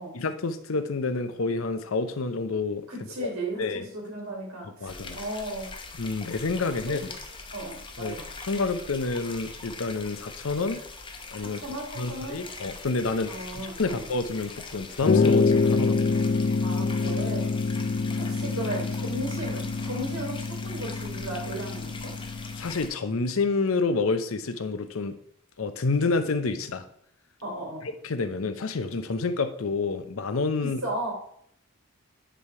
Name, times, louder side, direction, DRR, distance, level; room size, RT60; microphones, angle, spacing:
voice 1, 0.1-2.9 3.2-3.3 3.6-3.9 4.8-5.2 6.0-7.1 8.0-8.1 8.4-10.8 11.3-11.6 12.0-16.1 22.6-25.2 25.6-26.8 28.0-30.8, left 3 dB, 75° left, 9 dB, 0.7 m, -28 dB
voice 2, 2.9-5.7 6.9-7.0 7.5-8.3 11.4-12.4 13.3-14.0 16.6-17.5 18.2-22.1 27.4-27.8 30.6-31.1, right 1 dB, 90° right, -1 dB, 2.9 m, -35 dB
sound 1, 4.9-22.9, left 3 dB, 25° left, 0.7 m, -42 dB
sound 2, 15.0-22.7, left 4 dB, 50° left, 0.4 m, -26 dB
9.9 x 3.4 x 4.6 m, 0.68 s
head